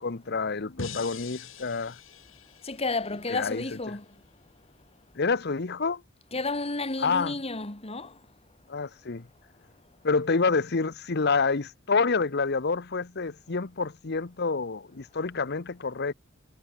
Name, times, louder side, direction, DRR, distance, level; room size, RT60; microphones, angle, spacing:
voice 1, 0.0-2.0 3.3-3.6 5.2-6.0 7.0-7.3 8.7-9.3 10.0-16.1, left 4 dB, 55° left, 0.9 m, -28 dB
sound 1, 0.8-3.9, left 4 dB, 85° left, 6.5 m, -43 dB
voice 2, 2.6-4.0 6.3-8.1, left 3 dB, 30° left, 2.4 m, -31 dB
head